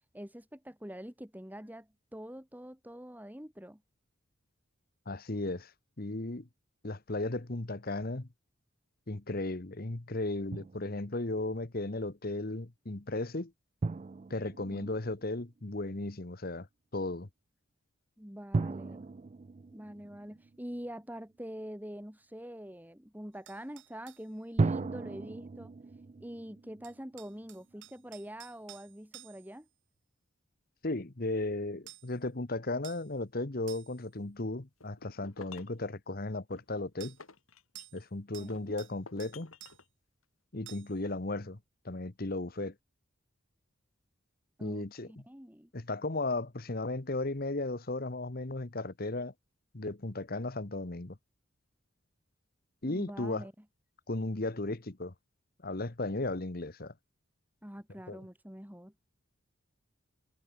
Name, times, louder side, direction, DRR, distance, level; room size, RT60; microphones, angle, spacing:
voice 1, 0.1-3.8 14.6-14.9 18.2-19.1 19.7-25.7 26.2-29.7 38.4-38.8 44.6-45.7 52.8-53.5 57.6-58.9, equal, 10° right, 2.7 m, -45 dB
voice 2, 5.1-5.7 6.0-6.5 6.8-8.3 9.1-13.5 14.3-16.7 16.9-17.3 30.8-37.2 37.9-39.5 40.5-41.6 41.8-42.7 44.6-45.2 45.7-49.3 49.7-51.2 52.8-53.5 54.1-55.1 55.6-56.9 58.1-58.2, left 2 dB, 45° left, 1.2 m, -35 dB
Drum, 10.5-11.3 13.8-15.6 18.5-21.0 24.6-27.7, right 3 dB, 30° right, 0.3 m, -36 dB
sound 1, 23.5-24.3 26.8-29.6 31.9-32.2 32.8-33.1 33.7-34.1 37.0-37.2 37.7-38.1 38.3-38.9 39.2-39.8 40.7-41.0, right 13 dB, 60° right, 2.5 m, -52 dB
sound 2, 34.8-35.8 36.5-38.1 38.5-39.9, left 4 dB, 90° left, 3.2 m, -52 dB
head